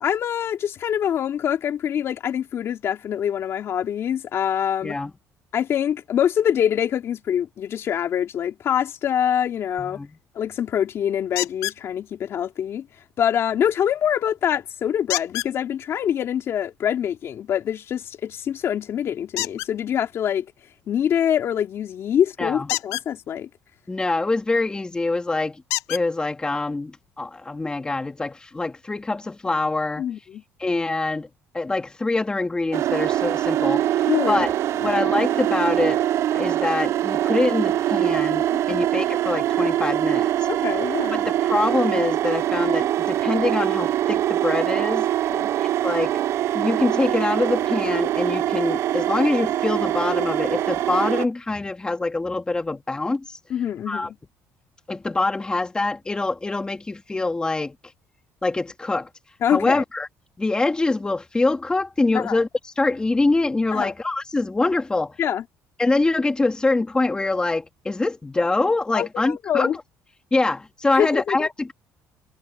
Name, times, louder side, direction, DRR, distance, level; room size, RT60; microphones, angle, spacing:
voice 1, 0.0-5.0 5.5-10.0 10.3-12.9 13.2-20.5 20.9-23.5 30.0-30.4 34.1-34.5 34.8-34.9 38.5-38.9 40.5-41.2 45.3-45.5 53.5-54.1 59.4-59.8 62.1-62.4 63.7-63.9 65.2-65.4 68.9-69.8 70.9-71.5, left 9 dB, 55° left, 2.6 m, -25 dB
voice 2, 9.8-10.1 22.4-22.7 23.9-25.6 25.9-30.0 30.6-31.3 31.5-34.5 34.8-36.0 36.3-40.5 41.1-45.1 45.6-46.2 46.5-53.4 53.9-54.1 54.9-57.7 58.4-59.1 59.5-60.1 60.4-62.5 62.8-65.2 65.8-69.7 70.3-71.7, left 2 dB, 15° left, 2.5 m, -24 dB
sound 1, 11.4-11.8 15.1-15.5 19.3-19.7 22.6-23.1 24.7-24.8 25.7-26.0 27.0-27.1 27.6-27.7, left 19 dB, 85° left, 0.5 m, -27 dB
sound 2, 32.7-51.2, right 12 dB, 60° right, 0.4 m, -23 dB
cardioid pair, 105°, 5 cm